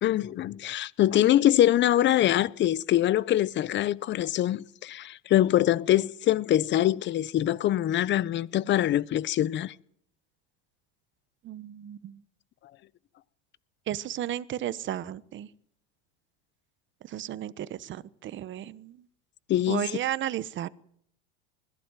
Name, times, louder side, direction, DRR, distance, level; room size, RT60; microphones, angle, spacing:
voice 1, 0.0-9.7 19.5-19.9, left 12 dB, 35° left, 0.8 m, -24 dB
voice 2, 11.4-12.2 13.9-15.5 17.0-19.0 19.7-20.7, right 12 dB, 35° right, 1.1 m, -34 dB
21.0 x 15.5 x 9.1 m
supercardioid pair, 120°, 32 cm